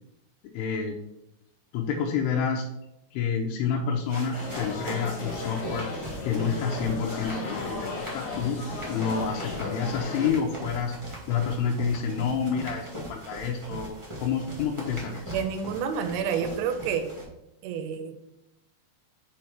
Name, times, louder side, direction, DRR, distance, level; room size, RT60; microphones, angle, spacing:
voice 1, 0.4-1.0 1.7-2.7 3.1-5.9 6.2-8.6 8.9-10.9 11.3-15.3, left 6 dB, 85° left, -1 dB, 2.7 m, -29 dB
sound 1, 4.0-17.2, right 1 dB, 45° right, 0.4 m, -40 dB
sound 2, 4.3-10.3, left 3 dB, 60° left, 2.5 m, -35 dB
voice 2, 15.3-17.1 17.6-18.2, right 7 dB, 90° right, 8 dB, 2.8 m, -29 dB
6.2 x 4.6 x 4.3 m, 0.83 s
omnidirectional pair, 4.8 m